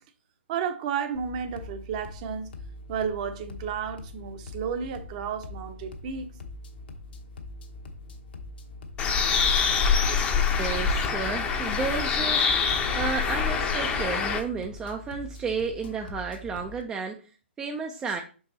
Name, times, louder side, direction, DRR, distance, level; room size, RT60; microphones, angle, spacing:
voice 1, 0.5-2.5 2.9-6.3, right 7 dB, 35° right, 0.9 m, -32 dB
sound 1, 1.1-16.8, left 2 dB, 50° left, 1.1 m, -42 dB
Bird, 9.0-14.4, left 5 dB, 20° left, 0.8 m, -25 dB
voice 2, 10.6-17.3 17.6-18.2, right 5 dB, 10° right, 0.5 m, -32 dB
6.0 x 4.8 x 3.9 m
figure-of-eight pair, 125°, 7 cm